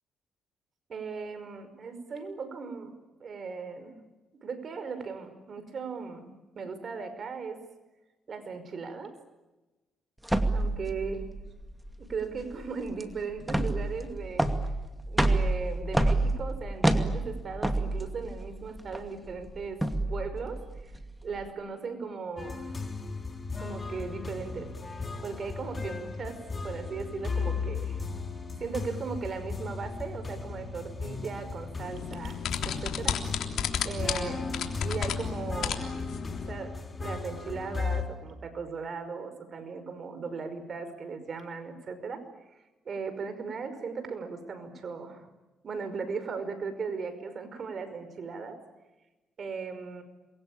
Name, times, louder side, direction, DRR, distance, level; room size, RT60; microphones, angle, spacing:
voice 1, 0.9-2.9 3.2-3.9 4.3-7.6 8.3-9.2 10.5-11.3 12.0-14.5 15.1-21.0 21.2-22.8 23.6-24.7 25.2-28.0 28.6-33.2 33.8-34.4 34.8-35.9 36.5-42.2 42.9-45.3 45.6-48.6 49.4-50.0, right 5 dB, 50° right, 10 dB, 5.4 m, -37 dB
sound 1, 10.2-21.5, right 1 dB, 5° right, 2.4 m, -29 dB
sound 2, 22.4-38.0, left 4 dB, 30° left, 4.4 m, -36 dB
sound 3, 31.8-36.5, left 8 dB, 75° left, 3.5 m, -33 dB
28.0 x 23.0 x 8.9 m, 1.1 s
cardioid pair, 90°, 0 cm